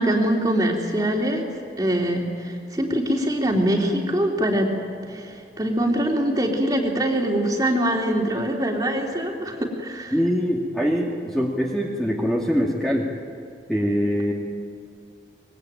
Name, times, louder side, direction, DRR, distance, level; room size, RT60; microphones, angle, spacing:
voice 1, 0.0-1.5 1.8-4.7 5.0-10.1, right 1 dB, 20° right, 0 dB, 3.3 m, -23 dB
voice 2, 10.1-13.1 13.7-14.3, equal, ahead, -3 dB, 2.2 m, -23 dB
25.0 x 22.0 x 9.2 m, 2.4 s
head